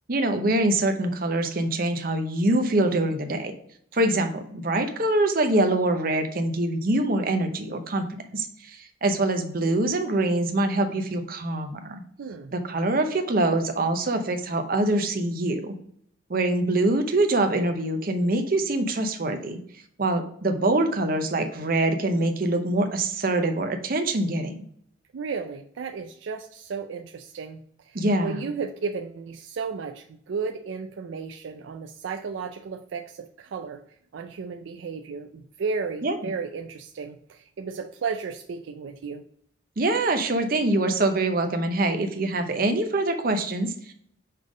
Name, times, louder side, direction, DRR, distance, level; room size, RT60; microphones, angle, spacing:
voice 1, 0.1-3.5 3.9-12.0 12.5-15.7 16.3-19.6 20.0-24.6 27.9-28.5 36.0-36.2 39.8-43.9, right 2 dB, 50° right, 6 dB, 0.7 m, -24 dB
voice 2, 12.2-12.5 25.1-33.8 34.1-39.2, right 5 dB, 80° right, 5 dB, 0.4 m, -34 dB
5.7 x 3.6 x 5.0 m, 0.66 s
head